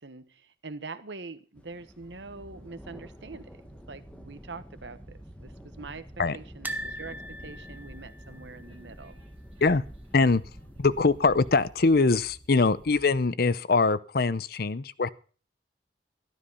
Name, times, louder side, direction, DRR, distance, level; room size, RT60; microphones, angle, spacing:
voice 1, 0.0-3.5 3.9-6.0 6.3-9.2, right 3 dB, 80° right, 1.2 m, -44 dB
sound 1, 1.5-11.5, equal, 5° left, 1.4 m, -49 dB
Train, 2.0-13.3, right 1 dB, 35° right, 4.4 m, -53 dB
sound 2, 6.6-9.7 10.0-10.2 10.4-10.5 11.8-12.3 12.8-12.9, right 1 dB, 10° right, 0.8 m, -40 dB
voice 2, 10.8-15.1, left 3 dB, 55° left, 0.6 m, -23 dB
13.0 x 12.5 x 5.6 m
head